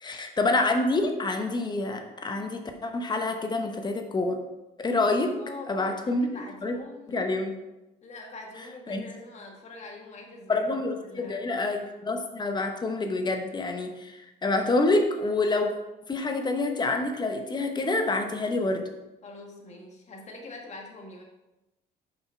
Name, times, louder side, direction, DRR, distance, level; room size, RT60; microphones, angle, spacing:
voice 1, 0.0-4.4 4.8-5.4 5.7-6.3 6.6-6.7 7.1-7.5 8.9-9.0 10.5-15.7 16.1-18.9, left 2 dB, 25° left, 5 dB, 0.9 m, -27 dB
voice 2, 5.2-7.2 8.0-10.6 11.0-11.8 19.2-21.2, left 2 dB, 40° left, 1 dB, 1.7 m, -44 dB
5.9 x 5.4 x 4.5 m, 0.98 s
cardioid pair, 110°, 17 cm